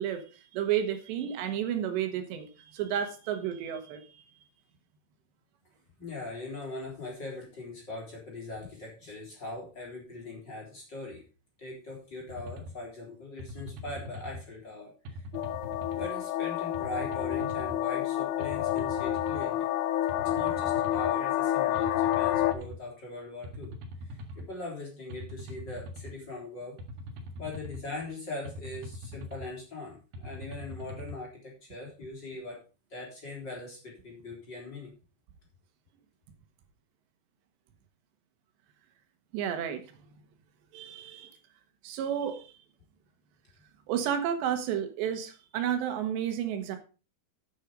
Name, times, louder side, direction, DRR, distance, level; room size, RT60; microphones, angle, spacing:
voice 1, 0.0-4.2 39.3-39.8 40.7-41.3 41.8-42.5 43.9-46.8, right 9 dB, 85° right, 7 dB, 3.6 m, -31 dB
voice 2, 6.0-11.2 11.6-15.3 16.0-19.7 20.2-23.7 24.0-26.8 27.4-32.6 32.9-34.9, left 2 dB, 25° left, -2 dB, 4.1 m, -41 dB
sound 1, 12.3-12.7 13.4-14.4 15.1-16.1 16.7-17.8 18.4-19.4 20.1-21.1 21.8-22.8 23.4-24.5 25.1-26.1 26.8-27.8 28.5-29.5 30.1-31.2, left 1 dB, 65° right, 3.2 m, -42 dB
sound 2, 15.3-22.5, left 13 dB, 80° left, 2.5 m, -29 dB
9.9 x 8.3 x 5.1 m, 0.35 s
omnidirectional pair, 4.9 m